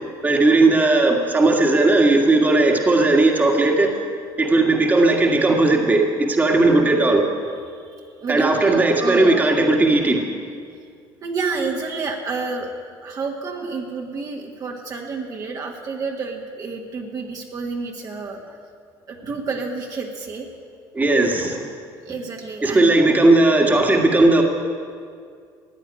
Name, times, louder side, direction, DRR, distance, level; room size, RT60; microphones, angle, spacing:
voice 1, 0.2-4.0 4.4-7.2 8.3-10.2 20.9-21.7 22.6-24.4, right 2 dB, 15° right, 2 dB, 1.8 m, -17 dB
voice 2, 7.7-9.5 11.2-12.7 13.0-18.4 19.1-20.5 22.0-23.1, right 4 dB, 40° right, 1 dB, 1.7 m, -29 dB
15.5 x 9.2 x 9.9 m, 2.2 s
cardioid pair, 125°, 10 cm